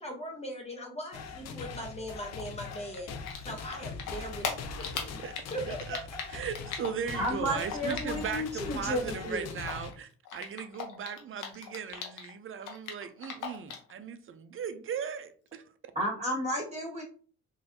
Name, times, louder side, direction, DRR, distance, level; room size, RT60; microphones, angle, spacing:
voice 1, 0.0-3.2 3.4-5.2 5.5-6.0, equal, 20° left, 0.9 m, -40 dB
sound 1, 1.1-9.9, left 5 dB, 60° left, 0.6 m, -42 dB
Typing, 2.3-8.5 8.7-12.3 12.6-13.9, left 7 dB, 85° left, 0.9 m, -39 dB
voice 2, 5.7-6.0 6.3-15.3, right 7 dB, 45° right, 0.5 m, -38 dB
voice 3, 7.1-9.5 15.9-17.0, equal, 20° right, 1.8 m, -32 dB
3.9 x 2.6 x 2.7 m
cardioid pair, 90°, 30 cm